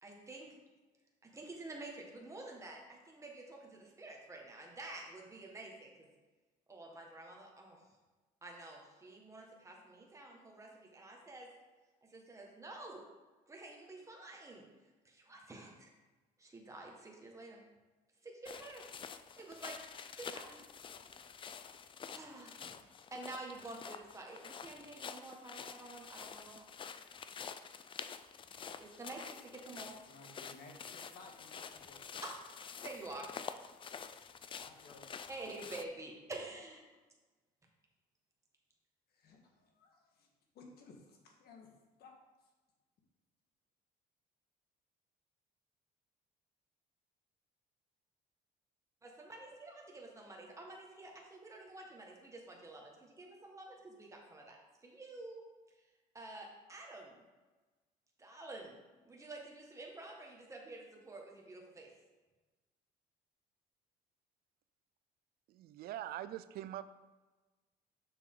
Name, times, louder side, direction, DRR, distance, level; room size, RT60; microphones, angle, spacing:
voice 1, 0.0-0.6 1.2-6.1 6.7-7.8 8.4-11.5 12.0-13.0 13.5-14.6 15.0-15.9 16.4-17.6 18.2-18.8 19.4-19.8 20.1-20.6 22.1-22.7 23.1-26.7 28.8-29.9 32.2-32.3 32.8-33.3 35.3-36.8 49.0-55.4 56.1-57.2 58.2-61.9, right 2 dB, 20° right, 0 dB, 1.6 m, -49 dB
sound 1, 18.5-35.8, left 6 dB, 30° left, 0.4 m, -48 dB
voice 2, 29.8-32.1 34.6-35.1 39.1-40.3 40.5-41.7 42.0-42.1 42.4-42.5, left 3 dB, 70° left, 1 dB, 1.6 m, -58 dB
voice 3, 65.5-66.8, right 12 dB, 65° right, 14 dB, 0.4 m, -43 dB
6.7 x 6.5 x 3.9 m, 1.2 s
cardioid pair, 110°, 17 cm